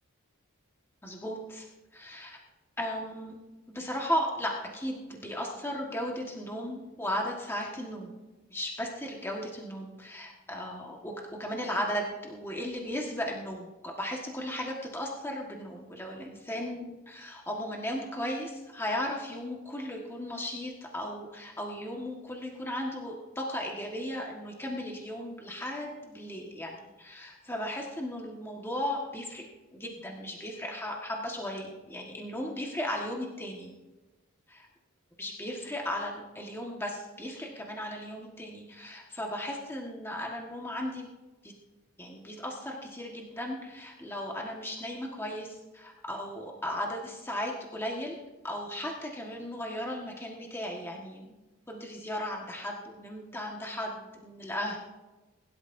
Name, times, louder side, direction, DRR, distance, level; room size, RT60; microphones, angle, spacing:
voice 1, 1.0-1.7 1.9-2.4 2.8-3.4 3.7-8.1 8.5-29.4 29.7-33.7 35.2-41.1 41.4-41.5 42.0-48.2 48.4-51.4 51.7-54.8, equal, 10° left, -1 dB, 1.5 m, -36 dB
22.0 x 12.5 x 2.7 m, 1.1 s
head